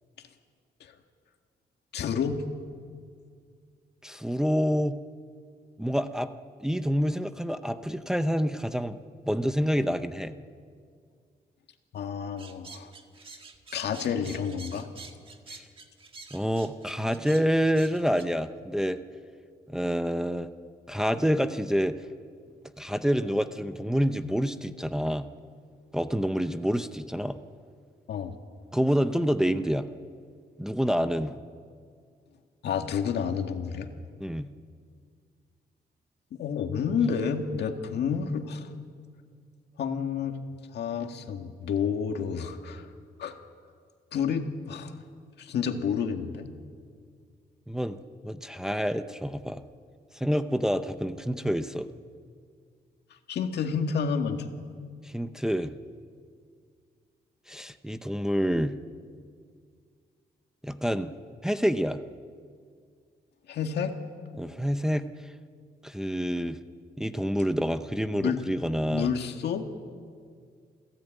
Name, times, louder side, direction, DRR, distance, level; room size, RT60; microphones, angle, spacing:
voice 1, 1.9-2.4 11.9-12.9 13.7-14.9 28.1-28.3 32.6-33.9 36.3-38.7 39.8-40.4 40.7-42.9 43.2-43.4 44.1-44.9 45.4-46.5 53.3-54.5 63.5-63.9 68.1-68.4 68.9-69.7, left 6 dB, 80° left, 5 dB, 1.9 m, -29 dB
voice 2, 4.0-5.0 5.8-6.3 6.6-9.0 9.3-10.3 16.3-19.0 19.7-20.5 20.9-22.0 22.8-25.3 25.9-27.4 28.7-29.9 30.6-31.4 34.2-34.5 47.7-48.0 48.2-49.6 50.2-51.9 55.0-55.7 57.5-58.7 60.6-61.1 61.4-62.0 64.3-65.1 65.8-66.6 67.0-69.1, equal, 5° right, 9 dB, 0.6 m, -27 dB
sound 1, 12.4-18.3, right 3 dB, 30° right, 1.6 m, -47 dB
28.5 x 16.0 x 9.1 m, 2.1 s
wide cardioid pair, 165°, 17 cm